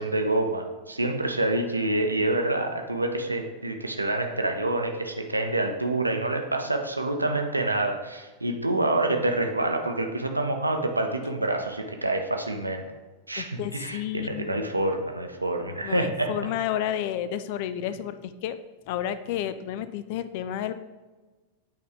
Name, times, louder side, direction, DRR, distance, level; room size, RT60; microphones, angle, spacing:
voice 1, 0.0-12.8 13.3-16.3, right 2 dB, 85° right, 4 dB, 0.6 m, -27 dB
voice 2, 13.4-14.7 15.8-18.6 18.9-20.7, left 10 dB, 50° left, 13 dB, 0.3 m, -31 dB
8.5 x 3.5 x 3.4 m, 1.2 s
figure-of-eight pair, 90°, 0 cm